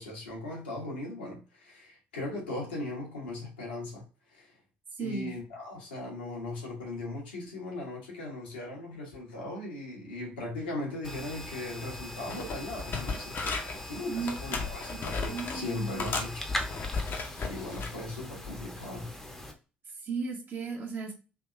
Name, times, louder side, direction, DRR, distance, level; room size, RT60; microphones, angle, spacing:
voice 1, 0.0-4.5 5.0-16.5 16.7-17.2 17.4-19.1, left 2 dB, 80° left, 1.2 m, -38 dB
voice 2, 5.0-5.3 14.1-14.6 14.9-16.1 20.0-21.1, right 4 dB, 40° right, 1.1 m, -36 dB
sound 1, 11.0-19.5, equal, 5° left, 0.9 m, -41 dB
sound 2, 12.3-13.8 14.3-15.6 16.0-18.0 18.4-18.7, left 4 dB, 40° left, 0.8 m, -35 dB
3.5 x 2.8 x 2.5 m
figure-of-eight pair, 50°, 5 cm